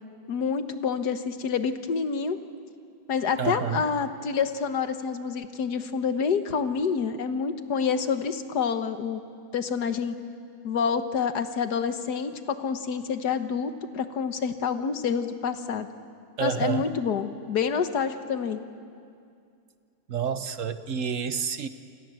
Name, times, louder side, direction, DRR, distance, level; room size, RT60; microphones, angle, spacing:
voice 1, 0.3-2.4 3.1-9.2 9.5-10.2 10.6-15.9 16.4-18.6, left 6 dB, 85° left, 9 dB, 1.8 m, -28 dB
voice 2, 3.4-3.9 16.4-16.9 20.1-21.7, right 7 dB, 55° right, 11 dB, 1.3 m, -29 dB
28.5 x 26.5 x 7.7 m, 2.4 s
omnidirectional pair, 1.7 m